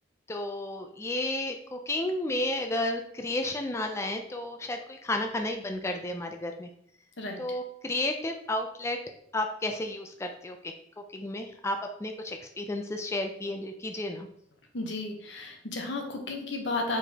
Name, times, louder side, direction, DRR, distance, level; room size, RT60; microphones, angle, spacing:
voice 1, 0.3-6.7 7.4-9.0 9.3-10.6 11.1-14.3, left 1 dB, 15° left, 4 dB, 0.3 m, -32 dB
voice 2, 14.7-17.0, left 2 dB, 75° left, 3 dB, 0.9 m, -33 dB
4.8 x 4.0 x 2.8 m, 0.69 s
head